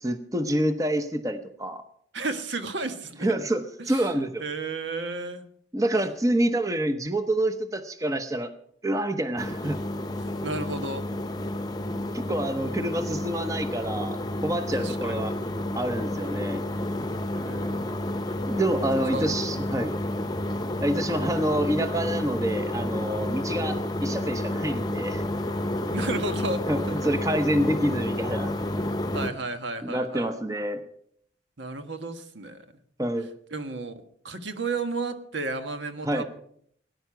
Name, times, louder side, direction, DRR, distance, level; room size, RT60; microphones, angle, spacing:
voice 1, 0.0-1.8 3.2-4.4 5.7-8.5 8.8-9.8 12.1-15.3 15.7-16.7 18.5-19.9 20.8-25.2 26.7-26.8 27.0-28.5 29.8-30.8 33.0-33.3 36.0-36.2, right 1 dB, 20° right, 8 dB, 0.8 m, -27 dB
voice 2, 2.1-3.3 3.8-5.4 10.4-11.1 14.7-15.2 17.3-18.0 19.1-19.3 25.9-27.0 29.1-30.3 31.6-32.6 33.5-36.2, right 3 dB, 75° right, 8 dB, 1.5 m, -33 dB
sound 1, 9.4-29.3, left 1 dB, 20° left, 0.9 m, -30 dB
17.5 x 10.5 x 5.9 m, 0.67 s
head